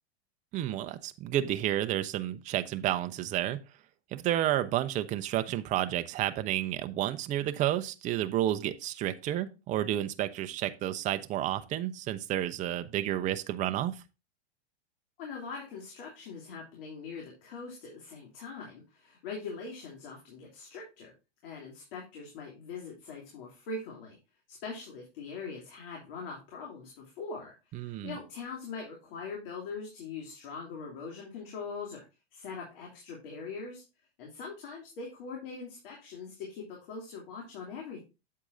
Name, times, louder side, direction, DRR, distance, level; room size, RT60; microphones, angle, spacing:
voice 1, 0.5-3.6 4.1-14.0 27.7-28.2, right 12 dB, 25° right, 10 dB, 0.5 m, -31 dB
voice 2, 15.2-21.1 21.4-24.2 24.5-32.0 32.3-33.8 34.2-38.0, left 4 dB, 60° left, -1 dB, 2.9 m, -42 dB
8.3 x 7.6 x 2.6 m, 0.29 s
hypercardioid pair, 120°, 32 cm